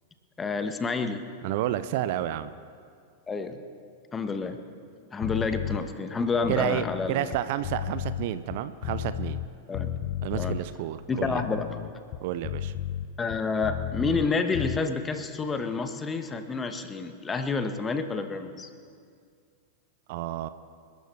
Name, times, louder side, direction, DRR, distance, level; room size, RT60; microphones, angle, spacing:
voice 1, 0.4-1.2 3.3-3.6 4.1-4.6 5.1-7.3 9.7-9.9 10.3-10.6 11.1-11.8 13.2-18.7, left 4 dB, 15° left, 8 dB, 1.3 m, -29 dB
voice 2, 1.4-2.5 6.5-9.4 10.2-11.4 12.2-12.7 20.1-20.5, right 12 dB, 50° right, 13 dB, 0.6 m, -30 dB
sound 1, 5.2-5.8 6.3-9.5 9.7-10.6 11.1-14.3 14.5-14.8, left 12 dB, 45° left, 0.6 m, -33 dB
28.0 x 12.5 x 3.4 m, 2.2 s
figure-of-eight pair, 90°, 0 cm